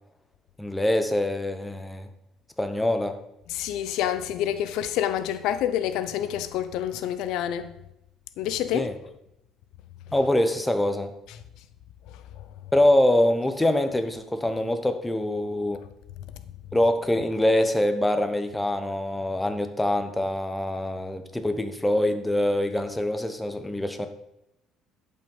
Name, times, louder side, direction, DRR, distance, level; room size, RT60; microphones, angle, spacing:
voice 1, 0.6-2.1 2.6-3.2 8.7-8.9 10.1-11.1 12.7-15.8 16.7-24.1, left 1 dB, 5° left, 0.9 m, -24 dB
voice 2, 3.5-7.7 8.4-8.9, left 11 dB, 80° left, 0.7 m, -27 dB
11.5 x 5.5 x 5.4 m
cardioid pair, 135°, 0 cm